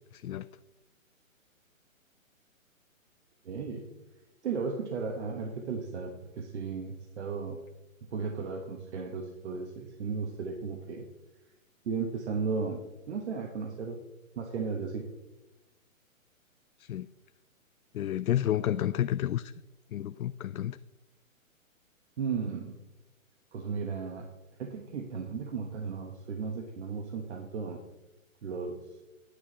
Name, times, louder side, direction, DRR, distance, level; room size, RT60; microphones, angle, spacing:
voice 1, 0.1-0.5 16.8-17.1 17.9-19.5 19.9-20.8, left 11 dB, 85° left, 13 dB, 0.5 m, -30 dB
voice 2, 3.4-3.8 4.4-7.6 8.1-11.1 11.8-14.0 14.4-15.1 22.2-22.7 23.5-24.3 24.6-27.8 28.4-28.8, right 5 dB, 55° right, 3 dB, 1.4 m, -35 dB
9.7 x 8.9 x 4.1 m, 1.0 s
hypercardioid pair, 155°, 41 cm